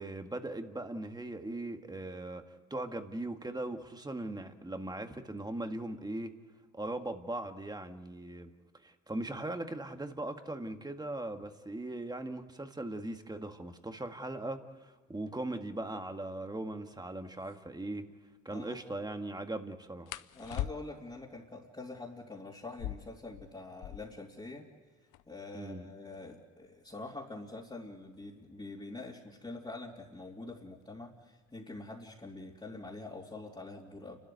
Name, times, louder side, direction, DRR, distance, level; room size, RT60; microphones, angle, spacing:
voice 1, 0.0-6.3 6.7-8.5 8.8-18.1 18.5-20.1 25.5-25.9, right 2 dB, 15° right, 6 dB, 1.8 m, -39 dB
sound 1, 17.4-17.6 20.1-21.2 22.6-24.3 24.6-24.7 24.9-25.5 26.1-28.7 29.7-30.0 30.4-30.8 31.2-31.9, left 13 dB, 85° left, 0.7 m, -43 dB
voice 2, 20.3-24.7 25.3-34.2, left 2 dB, 15° left, -5 dB, 3.2 m, -45 dB
29.5 x 13.0 x 9.4 m, 1.3 s
cardioid pair, 90°, 30 cm